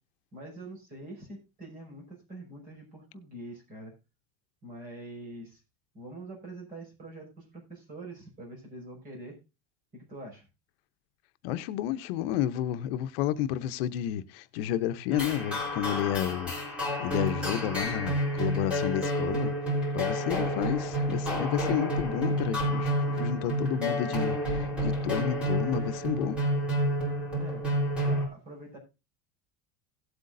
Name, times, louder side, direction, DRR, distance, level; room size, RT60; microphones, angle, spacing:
voice 1, 0.3-3.9 4.6-5.6 5.9-9.4 9.9-10.5 27.3-27.6 28.0-28.8, right 1 dB, 30° right, 5.8 m, -44 dB
voice 2, 11.4-19.5 19.9-26.4, left 11 dB, 75° left, 0.8 m, -31 dB
sound 1, 15.1-28.3, equal, 5° right, 3.8 m, -29 dB
17.5 x 8.1 x 2.6 m
cardioid pair, 165°, 29 cm